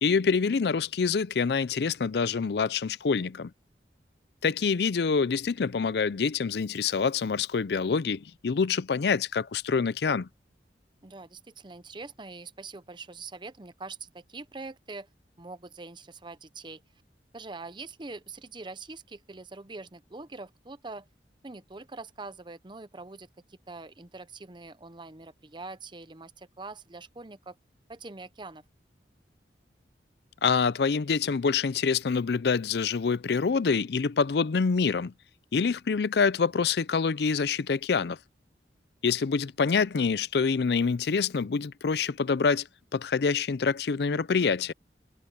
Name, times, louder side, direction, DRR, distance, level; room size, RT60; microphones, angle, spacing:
voice 1, 0.0-3.5 4.4-10.3 30.4-35.1 35.5-38.2 39.0-42.7 42.9-44.7, left 5 dB, 65° left, 0.5 m, -26 dB
voice 2, 11.0-15.1 15.4-16.8 17.3-21.1 21.4-27.6 27.9-28.6, right 3 dB, 25° right, 0.8 m, -43 dB
head